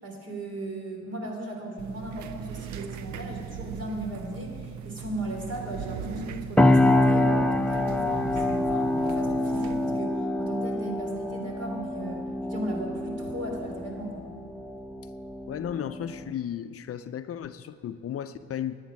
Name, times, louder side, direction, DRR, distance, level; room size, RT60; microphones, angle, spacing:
voice 1, 0.0-14.3, right 1 dB, 55° right, 1 dB, 3.5 m, -36 dB
sound 1, 1.8-10.0, right 8 dB, 70° right, 0.7 m, -39 dB
sound 2, 6.6-16.3, left 1 dB, 5° left, 0.6 m, -26 dB
voice 2, 15.5-18.8, left 9 dB, 50° left, 11 dB, 0.6 m, -34 dB
11.5 x 8.5 x 9.5 m, 2.2 s
cardioid pair, 90°, 30 cm